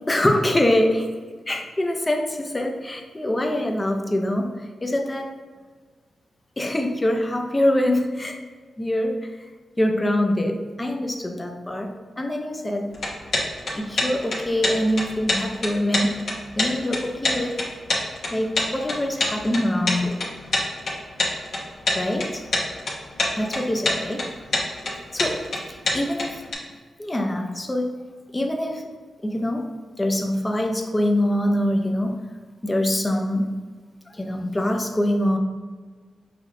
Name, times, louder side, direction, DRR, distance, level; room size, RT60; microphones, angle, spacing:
voice 1, 0.1-1.1 1.5-4.5 4.8-5.3 6.6-8.4 8.8-9.3 9.8-12.9 13.7-16.2 16.6-17.6 18.3-20.2 21.9-22.4 23.4-24.2 25.1-25.4 25.7-26.3 27.0-27.9 28.3-28.8 29.2-29.7 30.0-32.2 32.6-33.6 34.1-35.4, left 1 dB, 20° left, 3 dB, 0.5 m, -24 dB
sound 1, 12.9-26.5, left 2 dB, 65° left, 1.0 m, -26 dB
5.7 x 3.1 x 2.6 m, 1.5 s
wide cardioid pair, 120°, 0 cm